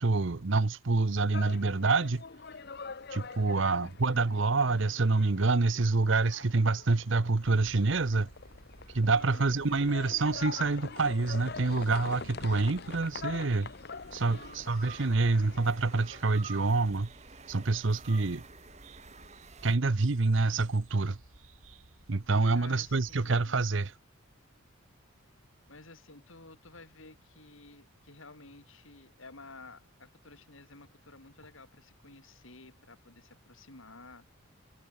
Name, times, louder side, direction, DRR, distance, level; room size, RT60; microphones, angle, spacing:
voice 1, 0.0-2.2 3.1-8.3 8.9-13.7 14.1-17.1 17.5-18.4 19.6-21.2 22.1-23.9, right 3 dB, 60° right, 0.8 m, -27 dB
sound 1, 1.1-16.2, left 4 dB, 50° left, 0.9 m, -44 dB
voice 2, 3.5-5.2 9.1-9.5 14.3-15.1 22.5-23.7 25.7-34.3, left 3 dB, 70° left, 3.8 m, -53 dB
sound 2, 7.4-23.3, right 2 dB, 80° right, 3.0 m, -56 dB
sound 3, 8.8-10.4 12.2-19.8, right 5 dB, 30° right, 6.8 m, -51 dB
head